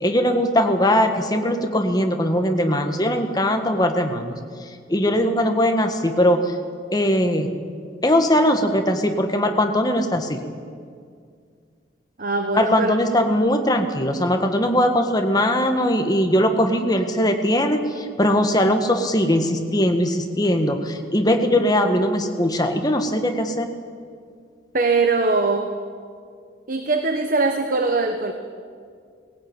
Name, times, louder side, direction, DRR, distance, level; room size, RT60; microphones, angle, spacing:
voice 1, 0.0-4.4 4.9-6.5 6.9-7.5 8.0-10.4 12.5-23.7, equal, 20° left, 5 dB, 1.6 m, -20 dB
voice 2, 12.2-12.9 24.7-25.8 26.7-28.3, right 3 dB, 45° right, 6 dB, 1.1 m, -21 dB
20.0 x 16.5 x 8.9 m, 2.1 s
head